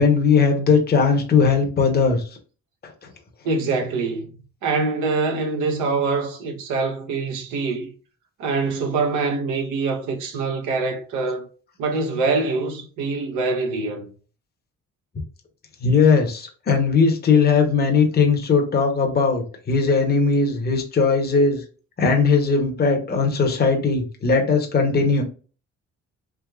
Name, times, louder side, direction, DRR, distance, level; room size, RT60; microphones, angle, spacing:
voice 1, 0.0-2.2 15.8-21.6 22.0-25.2, left 5 dB, 35° left, 0.8 m, -19 dB
voice 2, 3.4-4.3 4.6-7.9 8.4-11.5 11.8-14.1, right 4 dB, 90° right, 0.8 m, -24 dB
3.5 x 2.7 x 2.3 m
cardioid pair, 90°, 30 cm